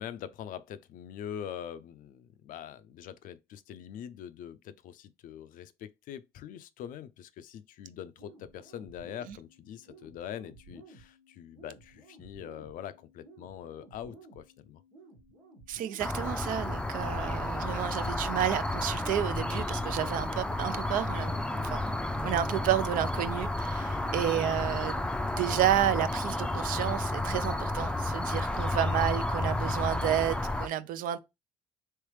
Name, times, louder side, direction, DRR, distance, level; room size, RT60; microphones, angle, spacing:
voice 1, 0.0-14.8 23.9-24.1, left 9 dB, 65° left, 0.5 m, -43 dB
sound 1, 8.2-28.2, right 2 dB, 90° right, 1.4 m, -55 dB
voice 2, 15.7-21.4 21.6-25.0 25.4-31.2, right 12 dB, 70° right, 0.5 m, -31 dB
sound 2, 16.0-30.7, left 1 dB, 5° left, 0.5 m, -31 dB
3.3 x 3.1 x 3.1 m
supercardioid pair, 65°, 15 cm